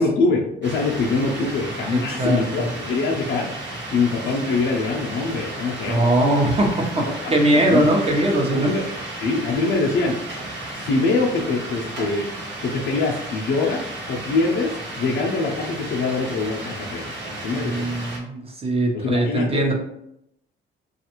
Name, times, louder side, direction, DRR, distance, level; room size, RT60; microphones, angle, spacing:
voice 1, 0.0-3.5 3.9-6.0 7.7-7.8 8.5-8.8 9.2-10.2 10.7-12.3 12.6-17.9 18.9-19.7, left 3 dB, 70° left, -3 dB, 0.6 m, -24 dB
sound 1, 0.6-18.2, right 1 dB, 65° right, 1.0 m, -33 dB
voice 2, 1.9-2.7 5.9-8.7 17.5-19.7, right 1 dB, 30° right, 1 dB, 0.8 m, -21 dB
3.1 x 2.4 x 2.9 m, 0.78 s
cardioid pair, 90°, 20 cm